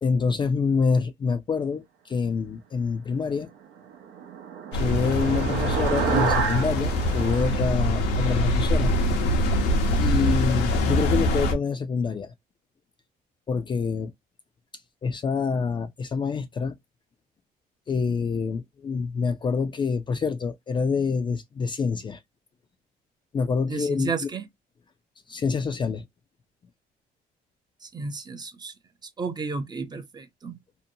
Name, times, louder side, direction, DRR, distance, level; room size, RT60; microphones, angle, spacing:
voice 1, 0.0-3.5 4.7-8.9 10.0-12.3 13.5-14.1 15.0-16.7 17.9-22.2 23.3-24.3 25.3-26.0, left 5 dB, 30° left, 0.4 m, -26 dB
sound 1, 3.7-8.4, right 6 dB, 85° right, 0.6 m, -30 dB
sound 2, 4.7-11.5, left 1 dB, 90° left, 0.7 m, -24 dB
voice 2, 23.7-24.5 27.9-28.7 29.2-30.6, right 4 dB, 25° right, 0.5 m, -32 dB
2.7 x 2.1 x 2.6 m
cardioid pair, 110°, 17 cm